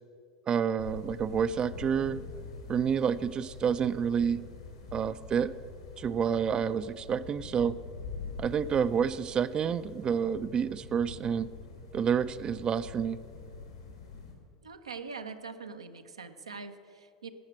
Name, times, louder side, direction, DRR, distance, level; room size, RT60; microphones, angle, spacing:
voice 1, 0.5-2.2 2.7-4.4 4.9-5.5 6.0-7.8 8.4-11.5 11.9-13.2, right 7 dB, 30° right, 14 dB, 0.4 m, -29 dB
sound 1, 0.8-14.3, left 4 dB, 80° left, 2.7 m, -45 dB
voice 2, 14.6-17.3, right 4 dB, 80° right, 7 dB, 0.7 m, -43 dB
17.5 x 6.5 x 7.6 m, 2.4 s
figure-of-eight pair, 75°, 3 cm